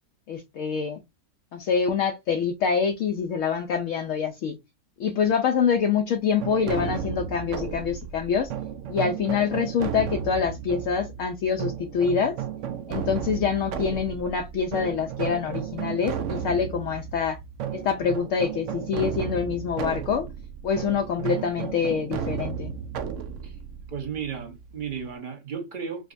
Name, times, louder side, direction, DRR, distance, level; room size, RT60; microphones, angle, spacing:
voice 1, 0.3-1.0 1.5-4.6 5.0-8.5 8.9-12.4 12.9-17.4 17.7-20.3 20.6-22.7, left 6 dB, 70° left, 0.8 m, -25 dB
sound 1, 6.4-25.1, right 8 dB, 70° right, 0.8 m, -34 dB
voice 2, 23.9-26.1, right 7 dB, 35° right, 1.0 m, -34 dB
4.9 x 2.2 x 2.5 m
omnidirectional pair, 1.6 m